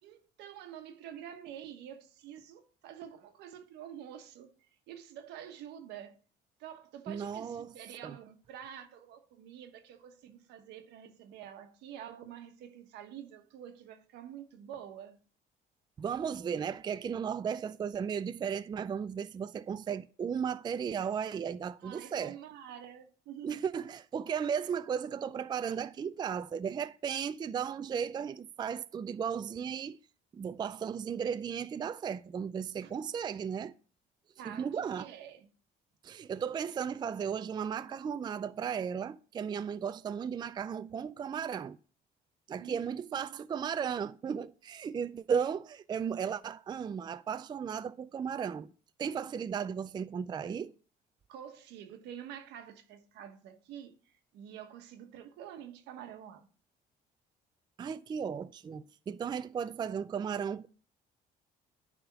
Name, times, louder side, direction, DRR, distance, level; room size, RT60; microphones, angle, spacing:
voice 1, 0.0-4.5 4.9-6.2 6.6-15.2 21.8-23.6 32.8-32.9 34.4-35.5 42.6-43.4 51.3-56.5, right 10 dB, 85° right, 1.2 m, -48 dB
voice 2, 7.1-7.7 8.0-8.2 16.0-22.3 23.4-30.0 30.3-33.7 34.5-35.1 36.0-41.8 42.5-48.7 49.0-50.7 57.8-60.7, right 7 dB, 25° right, 0.3 m, -35 dB
10.0 x 3.6 x 5.9 m
cardioid pair, 110°, 17 cm